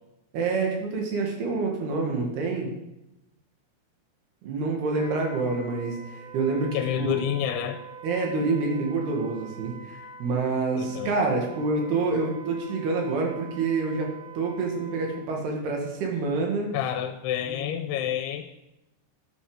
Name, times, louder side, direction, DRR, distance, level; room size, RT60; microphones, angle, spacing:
voice 1, 0.3-2.7 4.4-7.2 8.0-16.7 17.4-17.7, right 3 dB, 75° right, 0 dB, 4.1 m, -27 dB
Wind instrument woodwind instrument, 4.9-15.3, right 5 dB, 45° right, 3.8 m, -45 dB
voice 2, 6.7-7.8 10.8-11.2 16.7-18.6, left 10 dB, 90° left, 7 dB, 2.8 m, -29 dB
13.5 x 9.7 x 5.1 m, 0.94 s
omnidirectional pair, 4.6 m